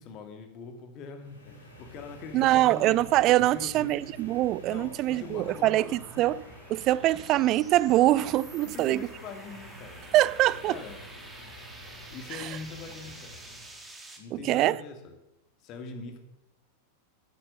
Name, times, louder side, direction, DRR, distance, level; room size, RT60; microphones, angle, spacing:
voice 1, 0.0-3.0 3.4-4.0 4.7-6.5 8.6-11.0 12.1-13.3 14.2-15.2 15.6-16.2, left 4 dB, 35° left, 2.2 m, -43 dB
sound 1, 1.2-13.8, left 1 dB, 80° left, 3.9 m, -49 dB
voice 2, 2.3-6.4 6.7-9.1 10.1-10.8 12.3-12.5 14.3-14.8, right 15 dB, 35° right, 0.4 m, -24 dB
sound 2, 4.1-14.2, right 2 dB, 10° right, 2.2 m, -49 dB
13.0 x 10.0 x 5.5 m
figure-of-eight pair, 90°, 0 cm